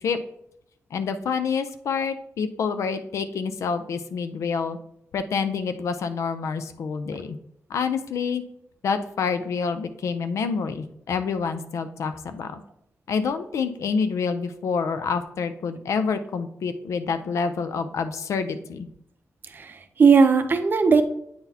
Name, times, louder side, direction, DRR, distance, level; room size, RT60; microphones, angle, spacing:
voice 1, 0.9-4.8 5.1-7.4 7.7-8.4 8.8-12.6 13.1-18.9, left 5 dB, 80° left, 10 dB, 0.5 m, -27 dB
voice 2, 19.5-21.0, right 5 dB, 40° right, 8 dB, 0.6 m, -18 dB
8.5 x 4.0 x 2.8 m, 0.73 s
wide cardioid pair, 130°, 5 cm